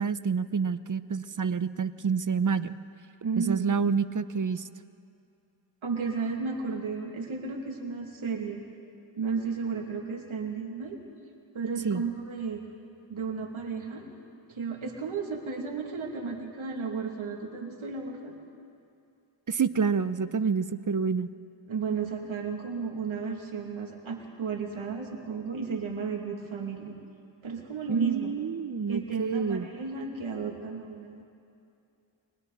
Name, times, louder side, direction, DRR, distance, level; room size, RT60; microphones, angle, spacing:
voice 1, 0.0-2.8 3.4-4.7 11.8-12.0 19.5-21.3 27.9-29.7, right 5 dB, 40° right, 14 dB, 0.9 m, -28 dB
voice 2, 3.2-3.7 5.8-8.6 9.2-11.0 11.5-12.6 13.1-14.0 14.5-18.4 21.7-26.9 27.4-28.3 28.9-31.2, right 5 dB, 75° right, 1 dB, 2.8 m, -33 dB
30.0 x 22.5 x 4.2 m, 2.6 s
cardioid pair, 45°, 48 cm